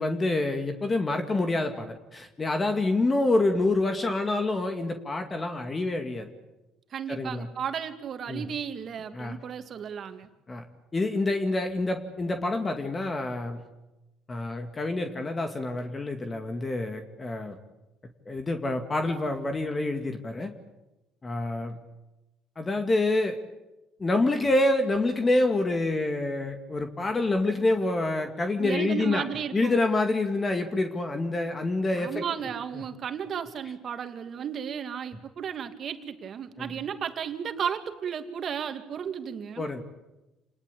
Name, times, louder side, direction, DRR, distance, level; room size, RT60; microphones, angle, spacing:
voice 1, 0.0-6.3 7.1-7.5 8.3-8.5 9.1-9.4 10.5-10.6 10.9-13.7 14.3-17.6 18.3-20.5 21.2-21.8 22.6-23.4 24.0-29.3 29.5-32.2 36.6-36.7 39.6-39.8, left 2 dB, 25° left, 6 dB, 2.3 m, -27 dB
voice 2, 6.9-10.3 28.6-29.8 31.9-39.7, right 8 dB, 50° right, 7 dB, 2.4 m, -34 dB
28.5 x 20.0 x 8.7 m, 1.0 s
supercardioid pair, 85°, 0 cm